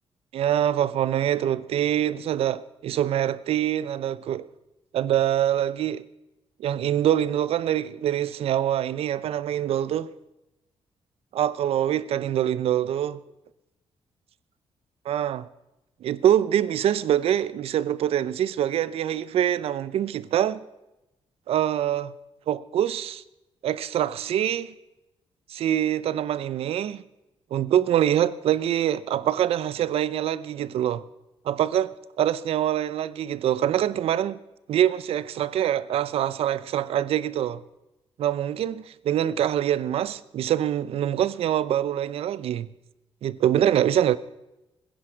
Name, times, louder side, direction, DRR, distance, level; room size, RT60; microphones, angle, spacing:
voice 1, 0.3-4.5 4.9-6.0 6.6-10.1 11.3-13.2 15.0-15.5 16.0-20.6 21.5-22.1 22.5-23.2 23.6-24.7 25.5-27.0 27.5-31.0 31.4-34.4 34.7-37.6 38.2-42.7 43.2-44.2, right 11 dB, 65° right, 0.7 m, -24 dB
21.0 x 10.5 x 5.8 m
wide cardioid pair, 180°, 11 cm